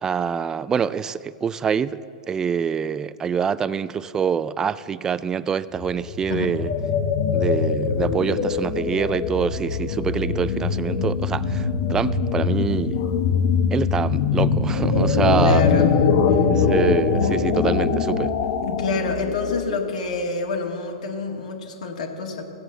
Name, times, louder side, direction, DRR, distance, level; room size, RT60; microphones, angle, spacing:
voice 1, 0.0-6.7 7.3-13.0 13.7-15.6 16.5-18.3, right 7 dB, 15° right, 0.3 m, -25 dB
sound 1, 5.7-19.9, left 5 dB, 55° left, 1.1 m, -22 dB
voice 2, 15.4-16.5 18.6-22.4, left 4 dB, 85° left, 1.9 m, -27 dB
15.5 x 8.0 x 7.6 m
hypercardioid pair, 140°, 4 cm